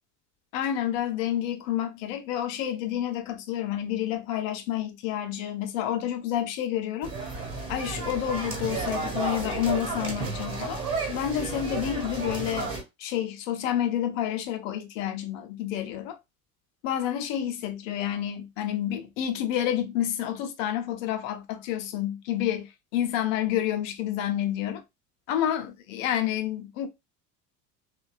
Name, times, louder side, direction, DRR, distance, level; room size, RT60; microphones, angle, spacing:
voice 1, 0.5-7.1 7.7-16.2 16.8-24.8 25.3-26.9, left 11 dB, 55° left, 0.7 m, -29 dB
sound 1, 7.0-12.8, right 4 dB, 30° right, 1.3 m, -32 dB
3.0 x 2.2 x 2.3 m
figure-of-eight pair, 70°, 48 cm